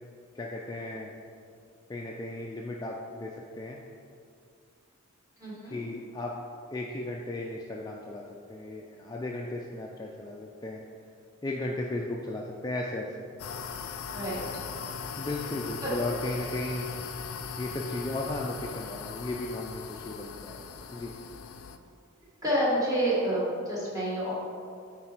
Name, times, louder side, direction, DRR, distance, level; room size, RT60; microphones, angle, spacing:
voice 1, 0.3-1.1 1.9-3.8 5.7-6.3 6.7-8.2 8.5-10.8 11.4-13.3 15.2-16.9 17.6-21.1, left 2 dB, 20° left, -2 dB, 0.3 m, -35 dB
voice 2, 5.4-5.8 14.1-14.7 15.8-15.9 22.4-24.3, right 1 dB, 15° right, -7 dB, 1.6 m, -29 dB
sound 1, 13.4-21.8, left 6 dB, 80° left, 0.4 m, -39 dB
8.5 x 4.1 x 4.4 m, 2.4 s
head